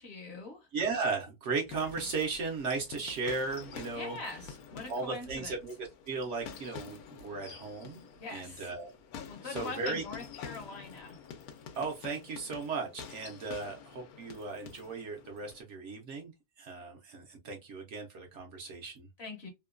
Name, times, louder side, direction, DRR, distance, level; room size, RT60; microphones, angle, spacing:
voice 1, 0.0-0.7 3.9-5.6 8.2-8.7 9.3-11.2 19.2-19.5, left 3 dB, 55° left, 0.8 m, -43 dB
voice 2, 0.7-4.2 4.9-8.0 8.3-8.9 9.4-10.0 11.7-16.3 16.6-19.1, right 4 dB, 65° right, 0.8 m, -36 dB
sound 1, 1.7-15.6, left 7 dB, 85° left, 1.1 m, -48 dB
2.8 x 2.2 x 2.3 m
omnidirectional pair, 1.5 m